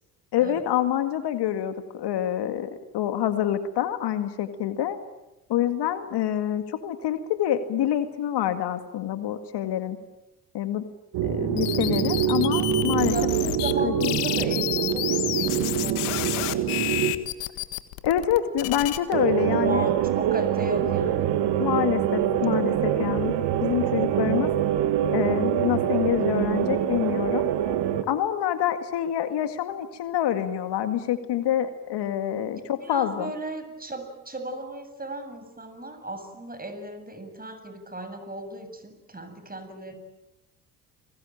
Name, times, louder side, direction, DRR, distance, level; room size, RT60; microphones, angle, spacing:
voice 1, 0.3-5.0 5.5-10.0 10.5-10.8 11.2-13.1 13.8-14.2 18.0-19.8 21.6-23.3 23.6-24.5 25.1-27.5 28.1-33.3, left 11 dB, 60° left, 9 dB, 2.1 m, -26 dB
sound 1, 11.1-17.1 19.1-28.0, right 10 dB, 60° right, 2.3 m, -25 dB
sound 2, 11.6-13.7 14.0-19.0, left 19 dB, 75° left, 1.6 m, -30 dB
voice 2, 13.1-17.0 19.6-21.4 32.5-39.9, right 1 dB, 20° right, 8 dB, 7.6 m, -36 dB
30.0 x 21.5 x 9.0 m, 0.95 s
hypercardioid pair, 55°, 46 cm